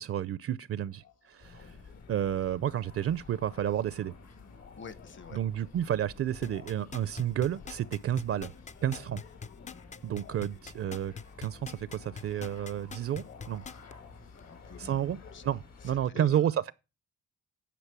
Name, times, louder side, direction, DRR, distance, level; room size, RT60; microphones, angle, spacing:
voice 1, 0.0-1.7 2.1-4.1 5.3-8.5 8.8-9.2 10.0-11.1 11.4-13.6 14.8-15.2 15.4-16.7, right 10 dB, 50° right, 0.5 m, -31 dB
sound 1, 0.8-16.1, left 6 dB, 60° left, 1.5 m, -57 dB
sound 2, 1.4-16.1, left 4 dB, 85° left, 3.4 m, -52 dB
voice 2, 4.8-5.4 8.9-9.1 14.4-15.4 15.8-16.5, left 6 dB, 40° left, 0.9 m, -48 dB
sound 3, 6.4-13.9 14.4-14.5, left 6 dB, 25° left, 0.4 m, -43 dB
10.0 x 5.1 x 6.0 m
cardioid pair, 90°, 30 cm